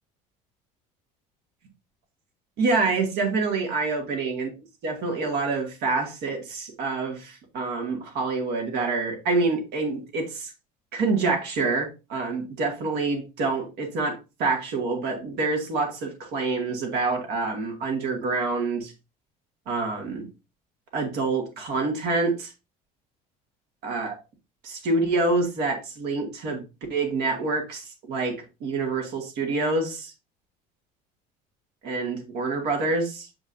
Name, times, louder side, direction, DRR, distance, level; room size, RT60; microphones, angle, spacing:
voice 1, 2.6-4.5 4.8-10.5 10.9-18.9 19.7-20.3 20.9-22.5 23.8-24.1 24.6-26.6 26.9-28.3 28.6-30.1 31.8-33.3, right 3 dB, 70° right, 2 dB, 2.5 m, -27 dB
7.1 x 5.1 x 2.7 m, 0.27 s
cardioid pair, 120°, 18 cm